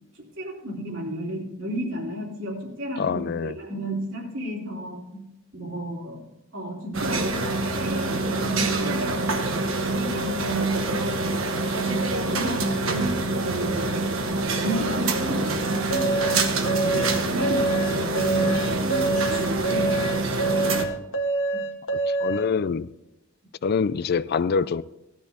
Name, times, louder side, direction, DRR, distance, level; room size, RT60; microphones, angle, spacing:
voice 1, 0.4-5.2 5.5-9.2 9.5-11.3 11.7-20.9 21.5-21.6, right 1 dB, 70° right, 3.1 m, -33 dB
voice 2, 3.0-3.6 22.2-22.9 23.6-24.8, left 5 dB, 50° left, 0.4 m, -25 dB
sound 1, 6.9-20.8, right 2 dB, 85° right, 1.3 m, -26 dB
sound 2, 15.9-22.5, right 3 dB, 80° left, 1.4 m, -26 dB
16.5 x 12.5 x 2.8 m
head